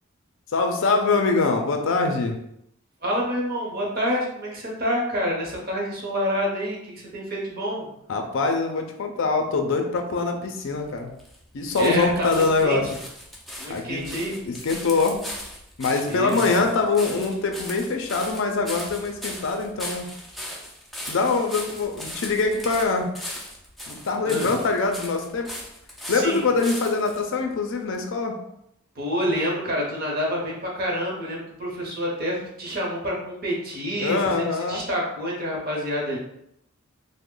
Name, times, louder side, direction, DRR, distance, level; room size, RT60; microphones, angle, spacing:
voice 1, 0.5-2.4 8.1-11.1 11.5-12.9 13.7-14.1 14.4-15.2 15.8-20.1 21.1-23.1 23.9-25.5 26.1-28.4 34.0-34.8, left 3 dB, 60° left, 4 dB, 0.4 m, -24 dB
voice 2, 3.0-7.9 11.8-12.8 13.6-14.4 16.1-16.4 24.2-24.5 26.1-26.4 28.9-36.2, equal, 45° right, -2 dB, 0.9 m, -28 dB
sound 1, 10.7-27.2 27.9-28.0, left 1 dB, ahead, 0.4 m, -38 dB
3.0 x 2.1 x 3.7 m, 0.77 s
head